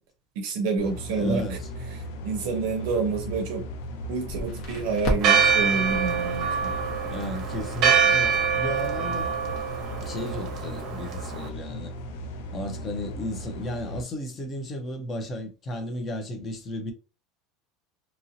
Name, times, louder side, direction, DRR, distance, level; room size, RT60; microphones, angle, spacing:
voice 1, 0.4-1.6 1.9-3.6 4.1-6.7, right 4 dB, 65° right, 0.5 m, -28 dB
sound 1, 0.8-14.0, equal, 80° left, 0.5 m, -37 dB
voice 2, 1.1-1.7 7.1-9.3 10.0-11.9 12.5-16.9, left 1 dB, 20° left, 0.6 m, -34 dB
Crackle, 4.3-10.8, equal, 45° left, 1.2 m, -37 dB
Church bell, 5.2-11.5, right 7 dB, 40° right, 0.8 m, -25 dB
2.9 x 2.7 x 2.7 m
cardioid pair, 165°, 0 cm